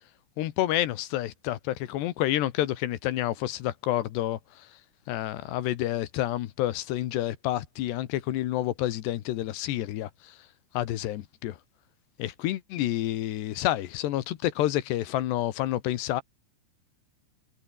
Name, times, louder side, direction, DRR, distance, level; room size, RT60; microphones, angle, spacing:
voice 1, 0.4-4.7 5.1-10.3 10.7-11.6 12.2-16.2, left 14 dB, 70° left, 3.2 m, -29 dB
omnidirectional pair, 5.5 m